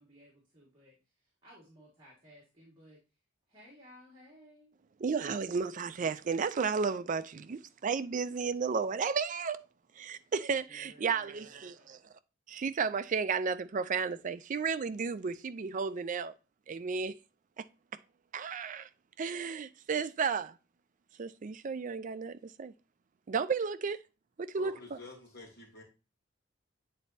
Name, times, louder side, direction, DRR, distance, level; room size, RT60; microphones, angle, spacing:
voice 1, 0.0-3.0 3.5-4.7 10.7-12.0, equal, 25° right, 1.8 m, -58 dB
voice 2, 5.0-9.6 10.0-12.0 12.5-16.3 16.7-17.2 17.6-17.7 18.3-18.9 19.2-20.6 21.2-22.7 23.3-24.0 24.4-25.0, right 5 dB, 40° right, 0.4 m, -33 dB
voice 3, 24.6-25.8, left 2 dB, 55° left, 2.4 m, -49 dB
8.8 x 4.1 x 2.6 m
head